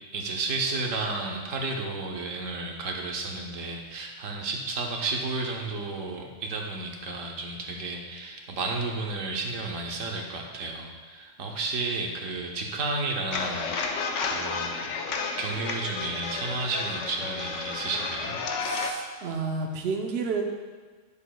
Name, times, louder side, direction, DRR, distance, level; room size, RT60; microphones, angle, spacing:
voice 1, 0.1-14.9 15.4-18.4, right 3 dB, 85° right, 1 dB, 1.2 m, -32 dB
sound 1, 13.3-18.9, left 4 dB, 75° left, 1.0 m, -32 dB
voice 2, 18.6-20.4, right 4 dB, 60° right, 2 dB, 0.9 m, -30 dB
9.7 x 6.8 x 2.2 m, 1.4 s
omnidirectional pair, 1.3 m